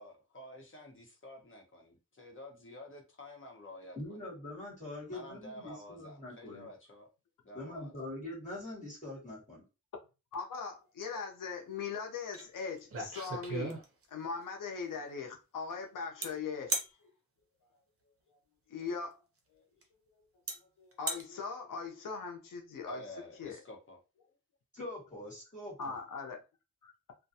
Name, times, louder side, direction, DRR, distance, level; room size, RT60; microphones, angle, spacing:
voice 1, 0.0-4.2 5.1-7.1 7.4-8.0 22.9-24.0, left 1 dB, 40° left, 0.9 m, -50 dB
voice 2, 4.0-6.7 7.5-9.6 24.7-25.9, left 1 dB, 25° left, 1.4 m, -43 dB
voice 3, 10.3-13.8 14.1-16.8 18.7-19.2 20.8-23.0 23.4-23.6 25.8-26.4, left 5 dB, 90° left, 0.7 m, -40 dB
sound 1, 12.3-12.4 12.8-14.2 16.2-16.3 16.7-16.9 18.8-18.9 19.8-19.9 20.5-20.6 20.9-21.2, right 3 dB, 45° right, 0.7 m, -35 dB
2.4 x 2.2 x 2.7 m
cardioid pair, 70°, 31 cm